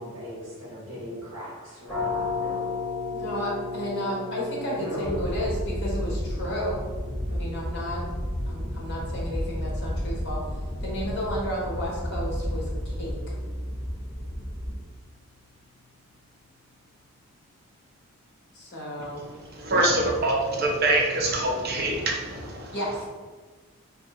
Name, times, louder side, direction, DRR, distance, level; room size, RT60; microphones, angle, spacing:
voice 1, 0.0-2.7 4.8-5.3, equal, 75° right, -8 dB, 0.8 m, -38 dB
sound 1, 1.9-13.4, left 4 dB, 5° left, 0.8 m, -37 dB
voice 2, 3.1-6.8 7.3-8.0 8.5-10.4 10.8-13.3 18.5-19.2 19.7-19.9 22.7-23.1, equal, 50° left, -3 dB, 0.9 m, -32 dB
sound 2, 5.0-14.7, equal, 20° right, 1.2 m, -32 dB
voice 3, 19.5-22.8, right 2 dB, 45° right, -1 dB, 0.5 m, -25 dB
2.6 x 2.3 x 3.9 m, 1.4 s
head